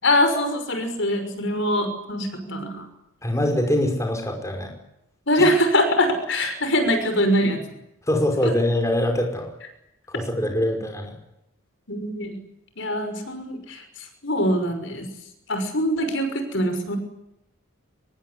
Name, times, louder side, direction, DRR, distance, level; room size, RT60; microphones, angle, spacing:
voice 1, 0.0-2.9 5.3-7.6 8.4-8.5 11.9-12.4 12.8-15.1 15.5-17.0, equal, 60° left, 7 dB, 6.0 m, -23 dB
voice 2, 3.2-4.7 5.4-5.5 8.1-9.5 10.1-11.1, left 1 dB, 15° left, 3 dB, 5.3 m, -23 dB
25.0 x 22.0 x 9.9 m, 0.83 s
head